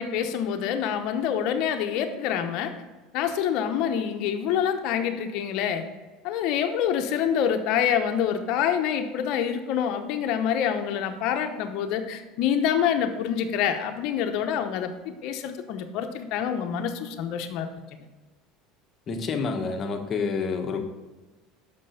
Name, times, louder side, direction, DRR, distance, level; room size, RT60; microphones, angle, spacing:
voice 1, 0.0-2.7 3.1-5.8 6.2-17.7, left 8 dB, 65° left, 6 dB, 0.8 m, -26 dB
voice 2, 19.1-20.8, left 4 dB, 40° left, 5 dB, 1.1 m, -28 dB
6.0 x 5.3 x 5.6 m, 1.2 s
supercardioid pair, 100°, 0 cm